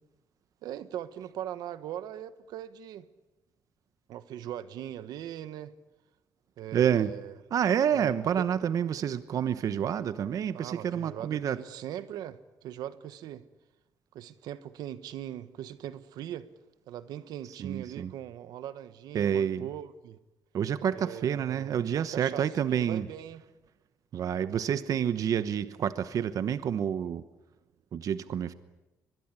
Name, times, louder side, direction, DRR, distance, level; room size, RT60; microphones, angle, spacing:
voice 1, 0.6-3.1 4.1-5.7 6.6-7.4 7.9-8.5 10.5-13.4 14.1-16.5 16.9-20.2 20.9-23.4, right 11 dB, 85° right, 13 dB, 1.3 m, -40 dB
voice 2, 6.7-7.1 7.5-11.6 17.6-18.1 19.1-19.7 20.5-23.1 24.1-27.2 27.9-28.5, right 8 dB, 60° right, 13 dB, 1.0 m, -28 dB
23.0 x 21.5 x 9.8 m, 1.0 s
cardioid pair, 110°, 7 cm